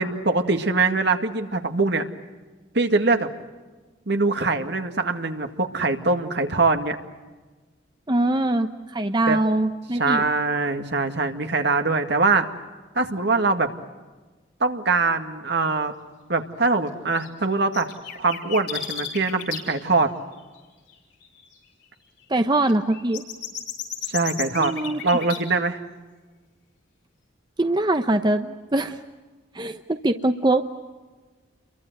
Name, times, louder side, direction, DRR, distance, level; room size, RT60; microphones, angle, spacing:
voice 1, 0.0-2.1 2.7-3.3 4.1-7.0 9.3-9.4 10.0-12.5 13.0-13.7 14.6-15.9 16.3-17.9 18.2-20.1 24.1-24.7 25.0-25.8, right 3 dB, 60° right, 6 dB, 2.0 m, -22 dB
voice 2, 8.1-8.7 8.9-10.2 22.3-23.2 24.6-25.0 27.6-29.0 29.5-30.6, right 2 dB, 25° right, 7 dB, 0.9 m, -22 dB
sound 1, 17.1-17.3 17.7-19.6 20.0-20.1 20.5-20.6 20.9-21.0 21.2-21.4 22.4-25.4, left 8 dB, 65° left, 5.9 m, -33 dB
30.0 x 23.5 x 7.9 m, 1.3 s
head